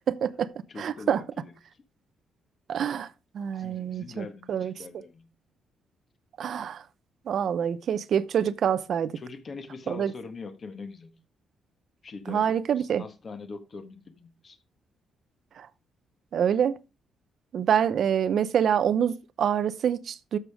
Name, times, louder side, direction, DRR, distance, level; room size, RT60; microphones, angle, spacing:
voice 1, 0.1-0.5 0.8-1.2 2.7-3.1 3.3-4.7 6.4-6.8 7.3-9.2 9.9-10.1 12.3-13.0 15.6-15.7 16.3-16.8 17.5-20.4, right 8 dB, 55° right, 0.7 m, -26 dB
voice 2, 0.7-1.8 3.5-5.3 9.1-11.1 12.0-14.6, left 4 dB, 35° left, 1.5 m, -43 dB
12.0 x 6.8 x 3.5 m
cardioid pair, 135°, 0 cm